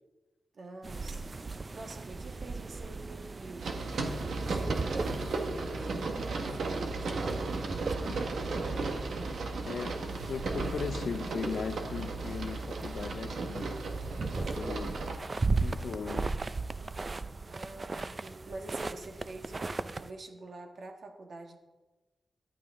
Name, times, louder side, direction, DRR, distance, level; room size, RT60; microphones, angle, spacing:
voice 1, 0.5-3.8 4.5-5.0 5.5-7.5 17.5-21.6, right 2 dB, 55° right, 1.6 m, -46 dB
sound 1, 0.8-20.1, right 3 dB, 30° right, 0.4 m, -38 dB
sound 2, 3.6-15.2, right 3 dB, 85° right, 1.5 m, -35 dB
voice 2, 9.7-13.7 14.4-15.0 15.6-16.3, left 6 dB, 70° left, 0.6 m, -38 dB
14.5 x 11.5 x 3.7 m
wide cardioid pair, 140°, 0 cm